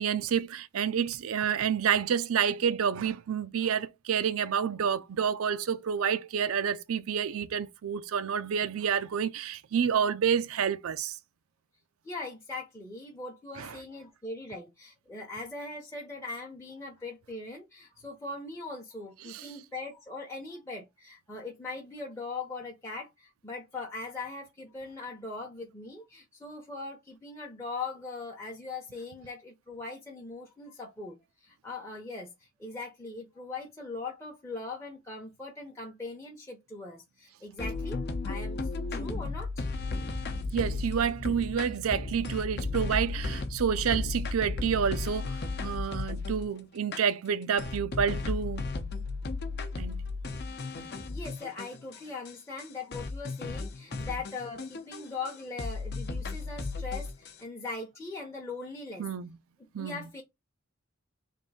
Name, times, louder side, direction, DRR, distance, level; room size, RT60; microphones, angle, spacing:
voice 1, 0.0-11.2 13.6-13.8 19.2-19.6 40.5-45.4 45.6-48.6 49.8-50.0 59.0-59.3 59.7-60.0, right 7 dB, 80° right, 0.4 m, -29 dB
voice 2, 12.0-32.3 32.6-38.6 38.9-39.7 51.1-59.1 59.8-60.2, left 3 dB, 15° left, 0.7 m, -40 dB
sound 1, 37.6-46.5 46.9-47.0 47.6-52.0 52.3-52.4 52.6-52.7 52.9-55.3 55.6-57.3, left 3 dB, 50° left, 0.7 m, -34 dB
3.4 x 2.6 x 4.1 m
head